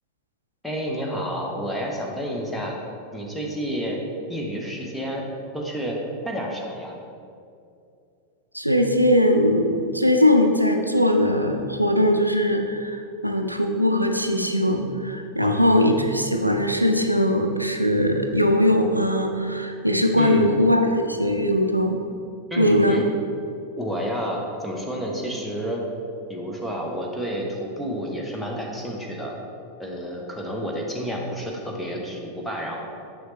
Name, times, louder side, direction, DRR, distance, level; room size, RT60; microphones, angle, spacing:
voice 1, 0.6-2.7 3.1-4.0 4.3-5.3 5.5-6.0 6.2-6.9 15.4-15.6 20.2-20.5 22.5-23.1 23.8-25.8 26.3-29.3 29.8-32.8, equal, 5° left, -1 dB, 1.0 m, -30 dB
voice 2, 8.5-22.0 22.6-23.0, left 1 dB, 90° right, 4 dB, 0.4 m, -20 dB
6.7 x 6.3 x 3.2 m, 2.5 s
figure-of-eight pair, 90°, 0 cm